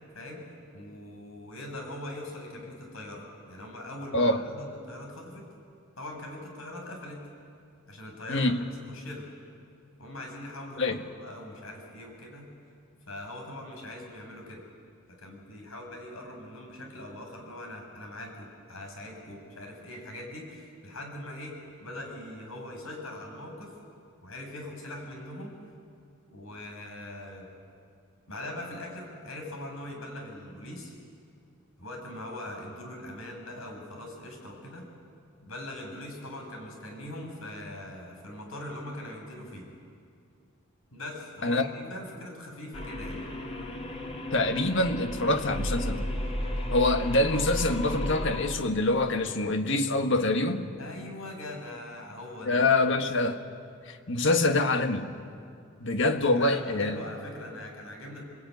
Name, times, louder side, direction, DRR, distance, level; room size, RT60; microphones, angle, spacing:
voice 1, 0.1-0.5 0.7-5.5 6.0-7.3 7.9-8.5 8.9-9.3 10.0-12.5 13.1-14.6 15.2-23.7 24.2-25.5 26.3-27.5 28.3-30.9 31.8-34.9 35.4-39.7 40.9-43.2 50.8-52.6 56.1-58.2, left 1 dB, 85° left, 1 dB, 6.4 m, -41 dB
voice 2, 4.1-4.4 8.3-8.6 10.8-11.0 41.4-41.7 44.3-46.1 46.7-50.7 52.4-53.4 53.9-55.1 55.8-57.0, left 2 dB, 65° left, 7 dB, 1.6 m, -25 dB
sound 1, 42.7-48.5, left 1 dB, 30° left, 2.6 m, -33 dB
28.0 x 20.5 x 9.5 m, 2.4 s
head